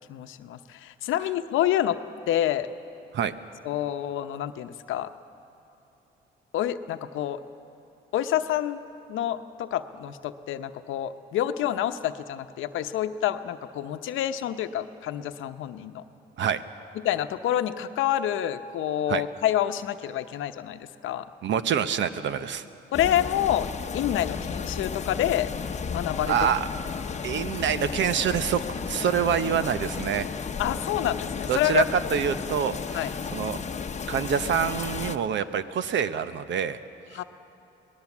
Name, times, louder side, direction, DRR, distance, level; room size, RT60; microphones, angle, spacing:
voice 1, 0.1-2.0 2.3-2.7 3.6-5.1 6.5-7.4 8.1-8.8 9.1-16.0 16.9-21.3 22.9-23.7 23.9-25.5 25.9-26.5 30.6-31.9 32.9-33.1 37.1-37.2, left 11 dB, 85° left, 10 dB, 0.9 m, -28 dB
voice 2, 21.4-22.6 26.3-26.6 27.2-30.3 31.5-33.6 34.1-36.8, right 8 dB, 70° right, 12 dB, 0.9 m, -26 dB
sound 1, 22.9-35.2, left 5 dB, 35° left, 0.9 m, -33 dB
24.0 x 19.0 x 7.3 m, 2.9 s
cardioid pair, 90°, 20 cm